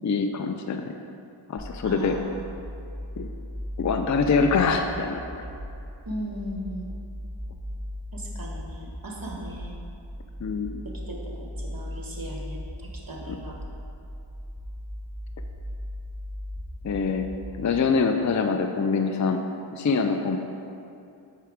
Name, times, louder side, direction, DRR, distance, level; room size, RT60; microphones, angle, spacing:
voice 1, 0.0-0.9 1.5-2.2 3.2-3.3 3.8-5.2 10.4-10.8 13.3-13.4 16.8-17.3 17.6-19.4 19.7-20.4, left 5 dB, 40° left, 5 dB, 0.4 m, -24 dB
sound 1, 1.6-17.6, equal, 5° right, 1.3 m, -38 dB
voice 2, 1.8-2.3 6.0-6.9 8.1-9.7 11.1-13.6, equal, 45° right, -2 dB, 1.4 m, -37 dB
6.8 x 4.6 x 4.9 m, 2.6 s
wide cardioid pair, 45°, 47 cm